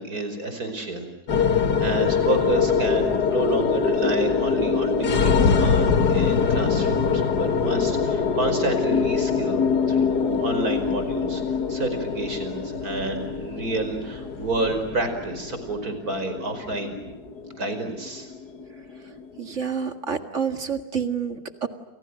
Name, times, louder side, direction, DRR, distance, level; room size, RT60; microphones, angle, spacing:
voice 1, 0.0-11.4 11.7-17.0 17.5-18.3, right 2 dB, 65° right, 8 dB, 5.6 m, -29 dB
sound 1, 1.3-19.7, left 5 dB, 85° left, 2.1 m, -24 dB
voice 2, 19.4-21.7, right 6 dB, 50° right, 7 dB, 2.3 m, -28 dB
30.0 x 29.0 x 6.4 m, 1.0 s
omnidirectional pair, 1.7 m